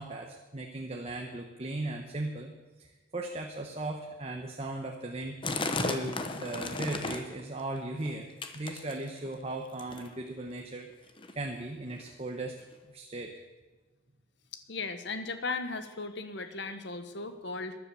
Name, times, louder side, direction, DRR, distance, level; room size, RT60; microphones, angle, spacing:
voice 1, 0.0-2.9 3.1-5.4 5.8-10.9 11.3-12.6 12.9-13.3, right 2 dB, 30° right, 2 dB, 1.0 m, -37 dB
sound 1, 5.4-7.4 7.7-8.1 8.4-9.3 9.8-10.1 10.9-11.0 11.2-11.3 11.9-12.0 12.7-12.8, left 3 dB, 25° left, 1.0 m, -34 dB
voice 2, 14.5-17.8, left 3 dB, 60° left, 9 dB, 1.2 m, -37 dB
14.5 x 10.5 x 6.9 m, 1.2 s
head